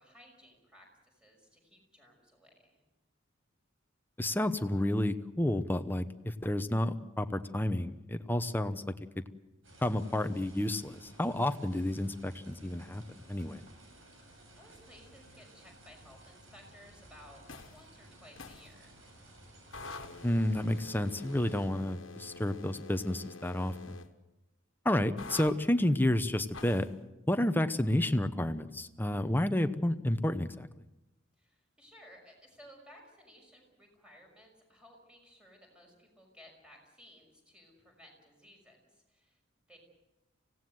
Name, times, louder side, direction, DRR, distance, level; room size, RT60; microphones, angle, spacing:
voice 1, 0.0-2.8 14.2-19.0 31.4-39.8, equal, 5° right, 1 dB, 5.9 m, -58 dB
voice 2, 4.2-8.8 9.2-9.3 9.8-13.0 13.3-13.6 20.2-24.0 24.8-26.9 27.3-30.7, left 1 dB, 10° left, 10 dB, 0.9 m, -30 dB
sound 1, 9.6-21.7, right 1 dB, 80° right, 7.1 m, -56 dB
sound 2, 17.5-17.8 18.4-18.7 19.7-24.1 25.2-25.6 26.5-26.9, left 3 dB, 75° left, 1.5 m, -47 dB
25.5 x 17.5 x 7.9 m, 0.99 s
head